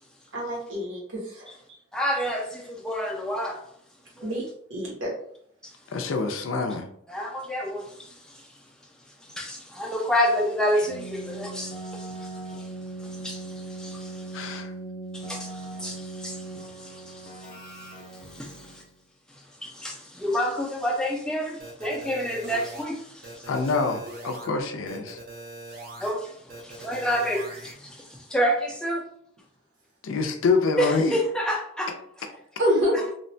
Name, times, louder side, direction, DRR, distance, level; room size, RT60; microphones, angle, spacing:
voice 1, 0.3-1.5 4.2-4.4 4.7-5.1 32.6-33.0, equal, 75° right, -4 dB, 1.1 m, -26 dB
voice 2, 1.9-3.6 4.2-4.3 5.6-5.7 7.1-8.4 9.2-12.7 13.0-14.6 15.1-17.9 18.2-18.8 19.6-23.5 26.0-29.1 30.8-31.9 32.9-33.0, equal, 5° left, -1 dB, 0.4 m, -29 dB
voice 3, 5.9-6.9 14.3-14.7 23.5-25.2 30.0-31.1, left 4 dB, 80° left, 5 dB, 0.4 m, -26 dB
Keyboard (musical), 10.8-18.9, right 2 dB, 40° left, 0.6 m, -39 dB
sound 1, 21.6-22.8 23.2-24.5 24.9-26.1 26.5-27.7, right 2 dB, 45° right, 0.6 m, -41 dB
2.8 x 2.1 x 2.6 m, 0.68 s
head